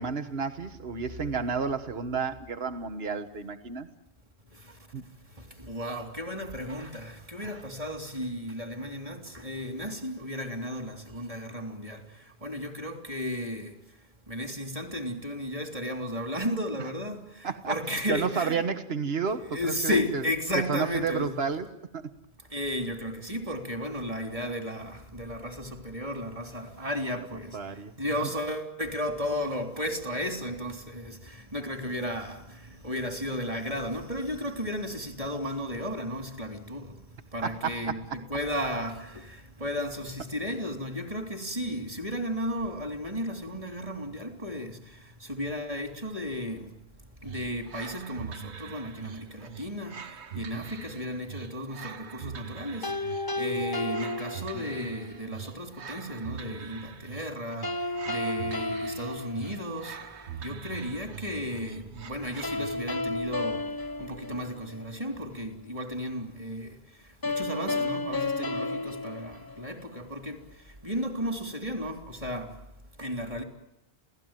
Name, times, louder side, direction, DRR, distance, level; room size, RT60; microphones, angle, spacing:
voice 1, 0.0-3.9 4.9-5.0 17.4-20.2 20.7-21.7 21.9-22.0 27.5-27.9 37.4-38.0, right 5 dB, 70° right, 1.6 m, -31 dB
voice 2, 5.7-12.0 12.4-13.7 14.3-17.2 17.7-18.6 19.5-21.4 22.5-27.6 28.0-31.1 31.5-32.4 32.8-36.8 37.3-39.2 39.6-44.8 45.3-46.7 47.2-50.0 50.3-52.9 53.4-57.7 58.1-59.9 60.4-63.6 64.0-66.7 67.3-70.4 70.8-72.5 73.0-73.4, equal, 30° right, 3.6 m, -34 dB
sound 1, 47.2-63.2, right 7 dB, 90° right, 1.4 m, -43 dB
sound 2, 52.8-55.0 57.6-60.1 62.4-64.9 67.2-70.0, left 2 dB, 20° left, 0.9 m, -32 dB
28.0 x 17.5 x 9.2 m
omnidirectional pair, 1.1 m